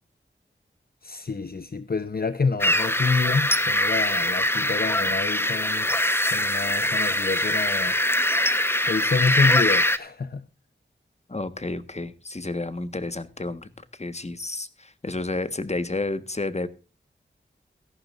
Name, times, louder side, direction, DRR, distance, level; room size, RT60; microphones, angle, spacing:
voice 1, 1.0-5.9 6.3-8.0 8.9-10.5, left 4 dB, 50° left, 0.9 m, -27 dB
sound 1, 2.6-10.0, left 1 dB, 10° left, 1.1 m, -23 dB
voice 2, 11.3-16.7, left 2 dB, 35° left, 1.4 m, -31 dB
17.5 x 14.0 x 2.6 m
wide cardioid pair, 55°, 20 cm